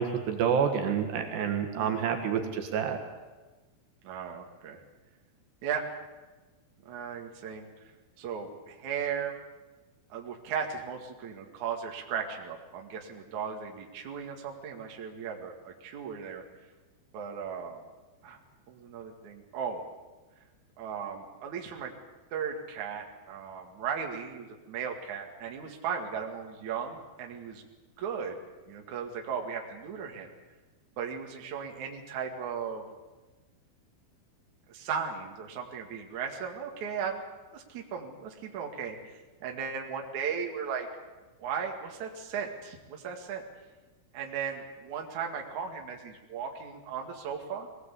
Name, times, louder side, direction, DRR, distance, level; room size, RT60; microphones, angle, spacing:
voice 1, 0.0-3.0, right 7 dB, 70° right, 4 dB, 3.8 m, -28 dB
voice 2, 1.8-2.2 4.0-4.8 5.6-6.0 6.9-7.7 8.2-9.4 10.1-16.4 17.1-17.8 18.2-18.4 18.7-19.8 20.8-21.9 22.3-27.6 28.0-28.4 28.7-30.3 31.0-32.9 34.7-37.2 37.5-40.9 41.4-43.4 44.1-47.7, right 7 dB, 50° right, 2 dB, 2.9 m, -36 dB
22.0 x 18.0 x 8.4 m, 1.2 s
omnidirectional pair, 5.1 m